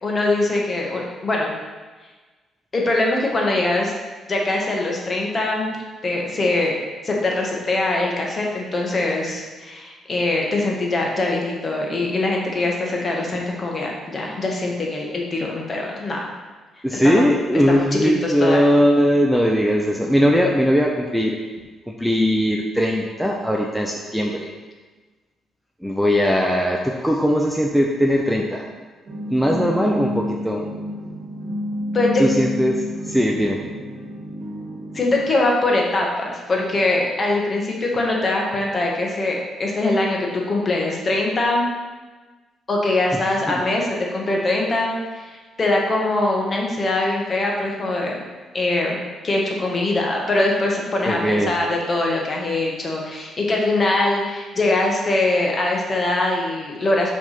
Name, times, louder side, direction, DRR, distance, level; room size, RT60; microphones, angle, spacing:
voice 1, 0.0-1.5 2.7-3.9 4.3-5.8 6.0-6.8 7.0-16.3 17.0-17.2 18.2-18.6 31.9-32.2 34.9-41.6 42.7-48.2 48.5-49.0 49.2-57.1, left 2 dB, 35° left, -1 dB, 1.5 m, -22 dB
voice 2, 16.8-21.4 21.9-24.5 25.8-28.7 29.3-30.7 32.2-33.6 43.1-43.2 43.5-43.6 51.1-51.6, equal, ahead, -1 dB, 0.6 m, -19 dB
sound 1, 29.1-35.4, equal, 55° right, 1.6 m, -30 dB
5.9 x 3.5 x 5.8 m, 1.3 s
cardioid pair, 90°, 0 cm